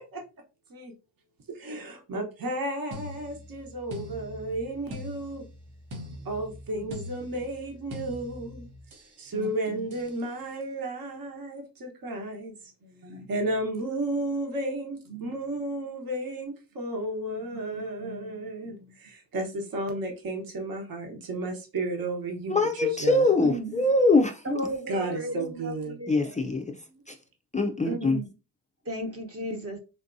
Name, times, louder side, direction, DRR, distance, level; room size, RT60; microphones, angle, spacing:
voice 1, 1.5-5.4 6.2-8.7 9.2-12.7 13.3-23.3 24.9-26.0 26.8-27.0, right 2 dB, 55° right, 1.2 m, -33 dB
sound 1, 2.9-9.2 9.9-10.2, left 1 dB, 80° right, 1.2 m, -43 dB
voice 2, 9.3-9.9 12.8-13.3 15.1-15.3 17.3-18.9 23.4-23.7 24.4-26.4 27.8-28.3 28.8-29.8, right 1 dB, 35° right, 1.0 m, -36 dB
voice 3, 22.5-24.4 26.1-26.8 27.1-27.2 27.5-28.2, left 2 dB, 20° left, 0.3 m, -23 dB
3.6 x 2.6 x 2.6 m
cardioid pair, 75°, 42 cm